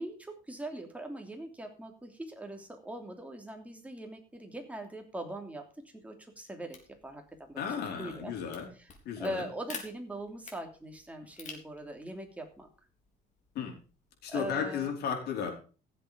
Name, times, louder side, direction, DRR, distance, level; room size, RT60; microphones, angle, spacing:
voice 1, 0.0-5.7 5.9-6.8 7.0-7.6 8.0-8.3 9.2-12.7 14.3-14.9, right 1 dB, 10° right, 3 dB, 3.0 m, -41 dB
sound 1, 6.7-14.6, left 5 dB, 45° left, 3.6 m, -51 dB
voice 2, 7.6-8.7 9.0-9.5 13.5-13.7 14.2-15.5, left 7 dB, 75° left, 2 dB, 4.5 m, -34 dB
15.0 x 7.7 x 5.1 m, 0.37 s
cardioid pair, 110°, 17 cm